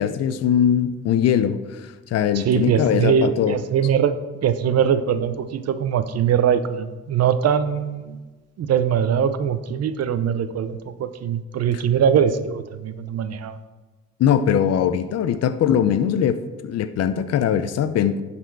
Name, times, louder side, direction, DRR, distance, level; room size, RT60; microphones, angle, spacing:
voice 1, 0.0-3.6 11.7-11.8 14.2-18.2, left 9 dB, 55° left, 12 dB, 0.5 m, -21 dB
voice 2, 2.3-4.1 4.4-8.2 8.6-13.6, right 8 dB, 55° right, 12 dB, 0.6 m, -22 dB
11.0 x 4.3 x 4.6 m, 1.3 s
cardioid pair, 90°, 30 cm